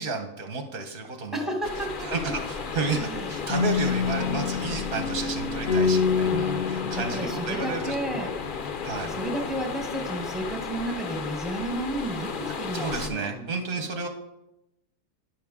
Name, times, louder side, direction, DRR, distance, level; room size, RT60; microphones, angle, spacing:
voice 1, 0.0-1.5 2.0-8.3 8.8-9.2 12.7-14.1, right 4 dB, 50° right, 4 dB, 0.7 m, -32 dB
voice 2, 1.3-2.3 2.8-3.3 6.3-8.4 9.0-13.5, right 1 dB, ahead, 2 dB, 0.7 m, -33 dB
sound 1, 1.6-13.1, left 5 dB, 65° left, 0.5 m, -34 dB
sound 2, 3.5-8.4, left 5 dB, 50° left, 0.8 m, -27 dB
10.5 x 6.0 x 3.6 m, 0.92 s
omnidirectional pair, 1.6 m